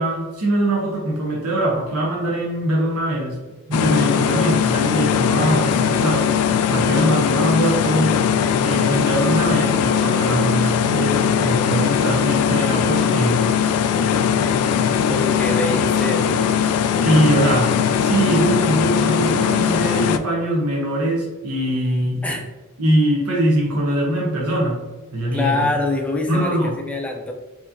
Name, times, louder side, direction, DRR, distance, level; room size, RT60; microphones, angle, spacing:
voice 1, 0.0-3.4 3.7-8.2 8.6-13.4 17.0-17.7 18.0-22.2 22.8-24.8 25.1-25.8 26.3-26.7, right 1 dB, 90° right, -3 dB, 0.9 m, -22 dB
sound 1, 3.7-20.2, left 7 dB, 85° left, 0.3 m, -19 dB
voice 2, 15.1-16.4 22.2-22.5 25.3-27.3, left 2 dB, 5° left, 1 dB, 0.4 m, -24 dB
4.7 x 2.9 x 2.6 m, 1.2 s
head